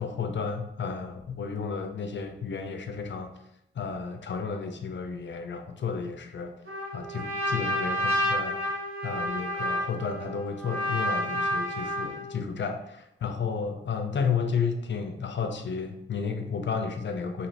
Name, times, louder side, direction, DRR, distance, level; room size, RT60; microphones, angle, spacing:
voice 1, 0.0-3.3 3.7-6.5 6.9-8.6 9.0-17.5, left 5 dB, 60° left, 5 dB, 0.4 m, -32 dB
Trumpet, 6.7-12.3, equal, 85° right, 1.3 m, -30 dB
2.8 x 2.5 x 3.1 m, 0.77 s
wide cardioid pair, 85°, 21 cm